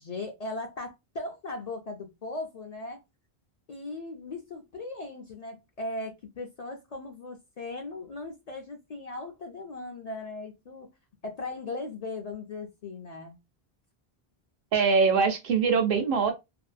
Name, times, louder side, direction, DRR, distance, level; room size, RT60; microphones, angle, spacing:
voice 1, 0.0-3.0 3.7-10.9 11.2-13.4, left 2 dB, 55° left, 0.5 m, -38 dB
voice 2, 14.7-16.3, right 5 dB, 65° right, 0.8 m, -23 dB
2.6 x 2.2 x 2.4 m
omnidirectional pair, 1.0 m